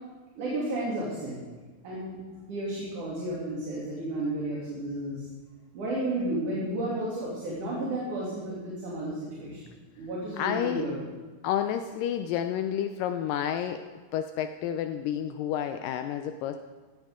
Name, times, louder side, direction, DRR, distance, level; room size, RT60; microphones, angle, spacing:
voice 1, 0.4-1.4 1.8-2.2 2.5-5.2 5.7-9.7 10.0-11.0, right 1 dB, 55° right, -6 dB, 4.1 m, -32 dB
voice 2, 10.4-10.8 11.4-13.8 14.1-16.6, left 10 dB, 85° left, 7 dB, 1.9 m, -30 dB
16.5 x 14.5 x 3.7 m, 1.3 s
omnidirectional pair, 4.5 m